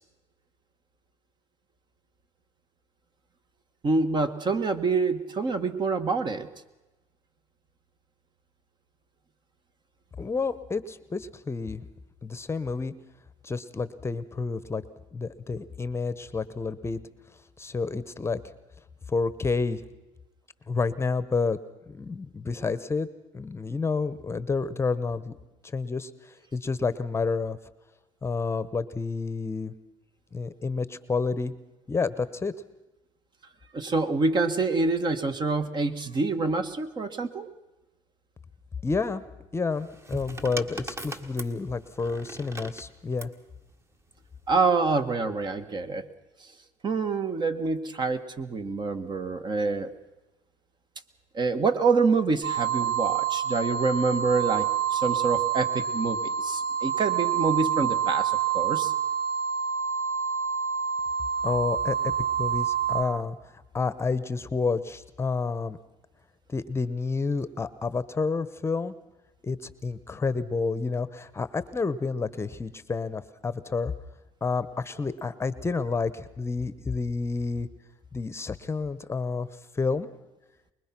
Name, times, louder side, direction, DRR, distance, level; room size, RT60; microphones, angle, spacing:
voice 1, 3.8-6.5 33.7-37.5 44.5-46.1 46.8-49.9 51.3-58.9, right 4 dB, 35° right, 9 dB, 1.6 m, -26 dB
voice 2, 10.2-11.8 12.2-12.9 13.4-14.8 15.1-17.0 17.6-18.4 19.1-19.8 20.7-21.6 21.9-23.1 23.3-25.3 25.6-26.1 26.5-27.6 28.2-29.7 30.3-31.5 31.9-32.5 38.8-39.2 39.5-43.3 61.4-62.1 62.4-63.4 63.7-65.8 66.5-68.9 69.4-73.9 74.4-77.7 78.1-79.5 79.7-80.1, left 4 dB, 20° left, 15 dB, 1.0 m, -29 dB
sound 1, 39.7-43.4 44.4-44.8, right 1 dB, 20° right, 1.8 m, -40 dB
sound 2, 52.4-63.0, right 8 dB, 55° right, 2.5 m, -27 dB
24.0 x 21.5 x 6.0 m, 1.0 s
cardioid pair, 100°, 12 cm